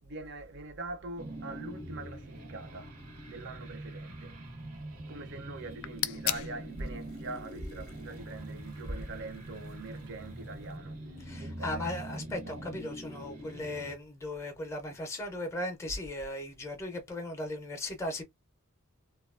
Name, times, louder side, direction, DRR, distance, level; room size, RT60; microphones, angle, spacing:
voice 1, 0.0-4.4 4.7-11.8 12.2-12.3 12.6-12.7, right 2 dB, 55° right, 0.6 m, -43 dB
sound 1, 1.2-14.0, right 1 dB, 80° right, 1.0 m, -44 dB
sound 2, 5.6-10.8, left 13 dB, 70° left, 0.3 m, -41 dB
voice 2, 11.2-18.2, left 1 dB, 15° left, 0.5 m, -37 dB
2.7 x 2.3 x 2.3 m
head